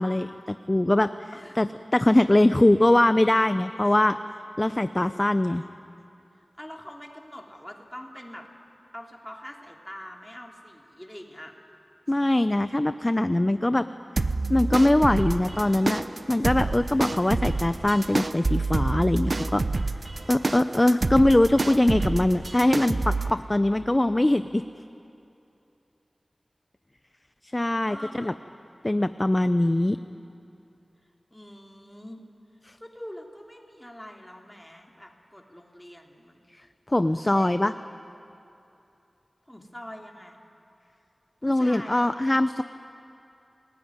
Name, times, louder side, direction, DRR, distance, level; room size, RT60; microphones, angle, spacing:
voice 1, 0.0-4.2 4.6-5.6 12.1-13.9 14.2-19.6 20.3-24.6 27.5-28.3 28.8-30.0 32.7-32.8 36.9-37.7 41.4-42.6, left 1 dB, 25° left, 11 dB, 0.6 m, -22 dB
voice 2, 6.6-8.5 8.9-11.5 27.9-28.4 31.3-32.2 32.8-36.4 37.2-37.8 39.5-40.4 41.4-42.2, equal, 10° left, 1 dB, 3.2 m, -44 dB
sound 1, 14.2-23.3, right 3 dB, 55° right, 0.9 m, -28 dB
29.5 x 20.0 x 9.7 m, 2.8 s
wide cardioid pair, 60°, 0 cm